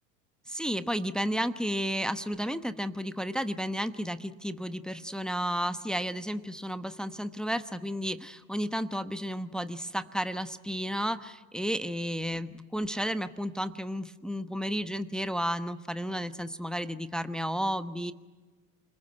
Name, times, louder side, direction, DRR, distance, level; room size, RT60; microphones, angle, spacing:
voice 1, 0.5-18.1, equal, ahead, 11 dB, 1.1 m, -32 dB
28.5 x 20.5 x 9.4 m, 1.3 s
hypercardioid pair, 75°, 42 cm